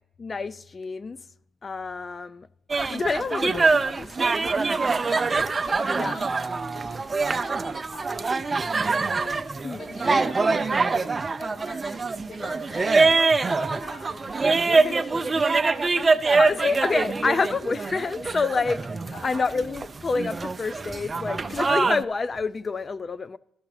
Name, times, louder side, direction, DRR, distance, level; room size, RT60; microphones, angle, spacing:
voice 1, 0.2-1.2 1.6-2.5 2.9-4.9 6.0-6.2 9.6-9.9 14.7-15.0 16.3-18.8 19.2-23.4, left 4 dB, 35° left, 0.4 m, -28 dB
sound 1, 2.7-22.0, right 4 dB, 30° right, 0.4 m, -24 dB
voice 2, 5.0-5.4 5.6-6.3 6.7-7.0 7.3-9.3 9.8-11.0 11.4-12.0 12.3-13.2 13.5-16.7 17.1-17.2 19.1-19.6, left 1 dB, 55° left, 3.1 m, -43 dB
13.0 x 6.2 x 4.8 m
cardioid pair, 90°, 0 cm